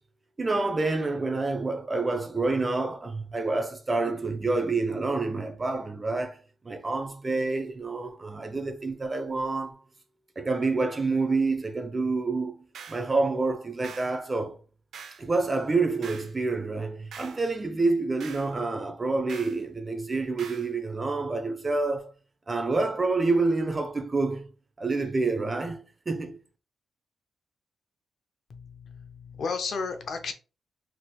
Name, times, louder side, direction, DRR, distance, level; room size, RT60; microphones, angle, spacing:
voice 1, 0.4-9.8 10.4-14.6 15.2-22.1 22.5-24.5 24.8-26.4, right 3 dB, 25° right, 0.5 m, -28 dB
sound 1, 12.7-13.1 13.8-14.2 14.9-15.3 16.0-16.3 17.1-17.4 18.2-18.5 19.3-19.6 20.4-20.7, right 6 dB, 85° right, 0.5 m, -44 dB
voice 2, 28.5-30.3, left 5 dB, 60° left, 0.5 m, -33 dB
3.3 x 3.0 x 2.2 m
wide cardioid pair, 140°, 0 cm